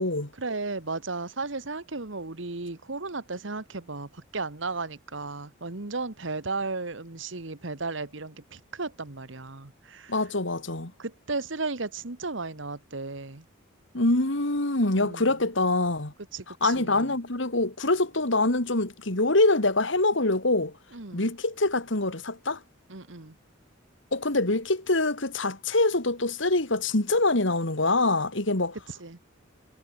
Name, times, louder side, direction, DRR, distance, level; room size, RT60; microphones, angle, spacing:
voice 1, 0.4-10.2 11.0-13.4 15.0-15.3 16.3-17.1 20.9-21.3 22.9-23.3 28.9-29.2, right 3 dB, 65° right, 1.6 m, -35 dB
voice 2, 10.1-10.9 13.9-16.1 16.6-20.7 21.1-22.6 24.1-28.8, left 2 dB, 65° left, 2.7 m, -25 dB
head